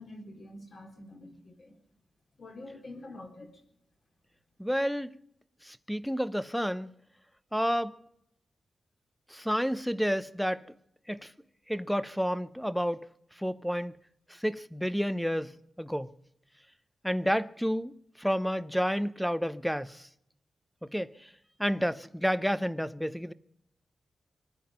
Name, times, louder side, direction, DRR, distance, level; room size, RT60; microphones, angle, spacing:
voice 1, 0.0-1.8 2.4-3.5, left 2 dB, 55° left, 4.0 m, -46 dB
voice 2, 4.6-5.1 5.6-6.9 7.5-7.9 9.3-10.6 11.1-11.3 11.7-13.1 13.4-13.9 14.3-16.1 17.0-20.1 20.8-21.3 21.6-23.3, equal, ahead, 0.6 m, -30 dB
24.5 x 10.0 x 5.3 m
wide cardioid pair, 120°, 0 cm